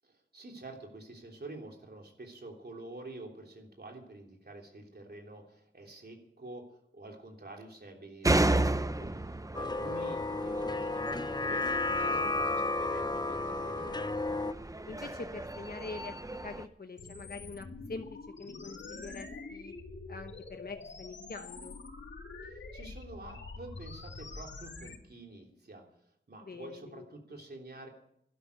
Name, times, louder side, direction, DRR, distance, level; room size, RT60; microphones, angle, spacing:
voice 1, 0.0-8.9 9.1-14.0 22.4-25.8 26.3-27.9, right 2 dB, 60° right, 1 dB, 3.3 m, -48 dB
sound 1, 8.2-16.7, right 2 dB, 20° right, 0.7 m, -34 dB
sound 2, 9.5-14.5, left 2 dB, 25° left, 0.6 m, -32 dB
voice 2, 12.1-12.6 14.9-18.1 18.4-19.7 20.1-21.8 26.4-27.1, left 3 dB, 55° left, 5 dB, 1.0 m, -45 dB
sound 3, 17.0-25.0, left 3 dB, 75° left, 1.8 m, -45 dB
12.5 x 11.5 x 8.2 m, 0.73 s
wide cardioid pair, 65°, 19 cm